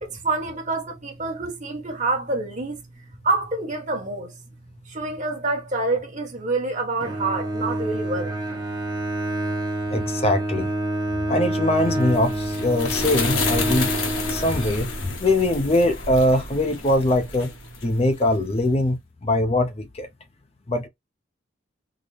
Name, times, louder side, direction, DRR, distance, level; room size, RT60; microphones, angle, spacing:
voice 1, 0.0-2.8 3.2-4.3 4.8-8.3, right 3 dB, 40° right, 1.1 m, -27 dB
Bowed string instrument, 7.0-15.2, right 1 dB, 20° right, 0.8 m, -28 dB
voice 2, 9.9-10.7 11.3-13.9 14.3-17.5 17.8-20.1 20.7-20.9, left 1 dB, 30° left, 0.5 m, -22 dB
sound 1, 11.8-18.5, left 3 dB, 85° left, 1.1 m, -30 dB
4.0 x 2.0 x 3.1 m
head